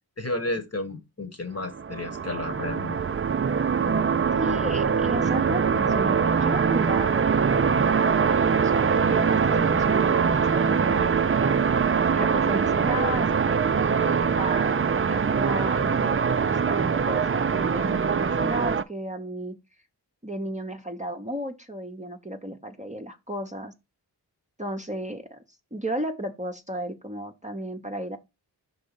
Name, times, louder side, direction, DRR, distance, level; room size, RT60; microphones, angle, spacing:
voice 1, 0.2-3.0, left 2 dB, 35° left, 1.3 m, -32 dB
sound 1, 1.6-18.8, right 6 dB, 30° right, 0.4 m, -23 dB
voice 2, 4.3-11.6 12.1-19.6 20.2-23.7 24.6-25.4 25.7-28.2, right 1 dB, 15° right, 0.8 m, -34 dB
5.4 x 3.9 x 5.3 m
wide cardioid pair, 45°, 42 cm